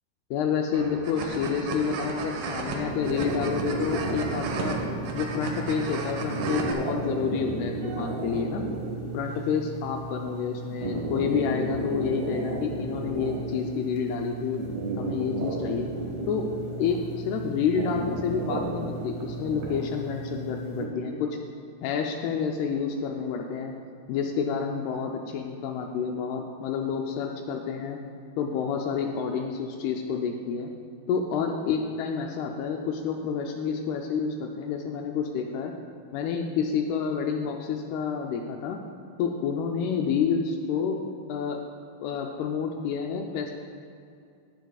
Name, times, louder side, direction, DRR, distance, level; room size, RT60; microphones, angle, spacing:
voice 1, 0.3-4.8 5.1-8.6 9.1-14.6 15.0-15.9 16.3-16.5 16.8-21.4 21.8-23.7 24.1-28.0 28.4-30.7 31.1-35.7 36.1-38.8 39.2-41.0 41.3-41.6 42.0-43.5, left 6 dB, 80° left, 2 dB, 2.6 m, -29 dB
sound 1, 0.7-6.7, right 4 dB, 80° right, 3.2 m, -34 dB
sound 2, 2.9-20.9, right 2 dB, 65° right, 2.0 m, -33 dB
18.5 x 10.0 x 2.4 m, 2.5 s
omnidirectional pair, 4.6 m